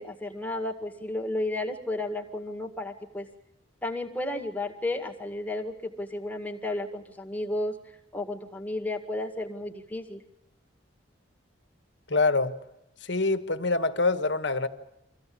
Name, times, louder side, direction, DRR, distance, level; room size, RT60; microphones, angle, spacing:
voice 1, 0.0-3.3 3.8-7.7 8.1-10.2, left 2 dB, 10° left, 2 dB, 2.0 m, -33 dB
voice 2, 12.1-12.6 13.0-14.7, left 3 dB, 65° left, 10 dB, 1.4 m, -25 dB
24.5 x 15.5 x 8.7 m, 0.85 s
head